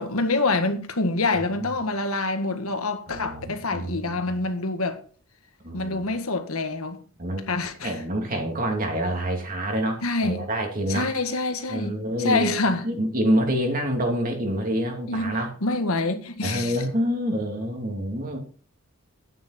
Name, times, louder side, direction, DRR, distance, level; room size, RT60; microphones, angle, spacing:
voice 1, 0.0-5.0 5.7-7.0 7.5-8.0 10.0-10.5 10.9-12.9 15.1-16.8, left 3 dB, 90° left, 1.6 m, -26 dB
voice 2, 3.1-4.4 5.6-6.1 7.2-7.4 7.8-11.1 11.7-15.5 16.4-18.4, equal, 40° right, 3.0 m, -27 dB
11.0 x 9.4 x 4.4 m
head